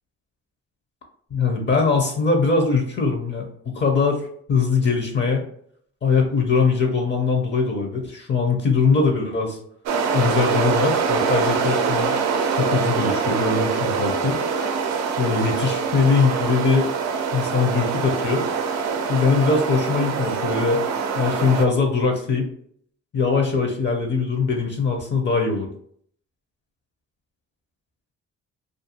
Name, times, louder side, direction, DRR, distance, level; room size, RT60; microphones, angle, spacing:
voice 1, 1.3-5.4 6.0-9.6 10.1-12.1 12.6-14.4 15.2-16.9 17.3-18.4 19.1-20.8 21.2-22.5 23.1-25.7, left 4 dB, 35° left, 2 dB, 0.6 m, -21 dB
sound 1, 9.9-21.7, right 5 dB, 65° right, 0.5 m, -24 dB
2.5 x 2.3 x 2.8 m, 0.63 s
cardioid pair, 90°, 30 cm